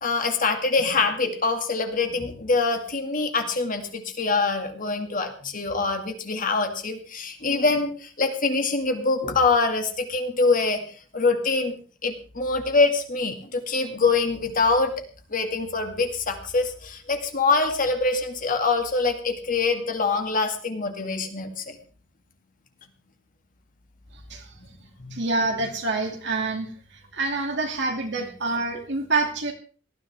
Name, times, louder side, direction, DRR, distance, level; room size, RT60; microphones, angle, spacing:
voice 1, 0.0-10.8 11.1-11.7 12.0-14.9 15.3-21.8 25.0-25.1, left 3 dB, 45° left, 5 dB, 2.2 m, -24 dB
voice 2, 25.1-26.7 27.1-29.5, right 3 dB, 60° right, 2 dB, 2.5 m, -26 dB
19.0 x 13.5 x 3.6 m, 0.39 s
head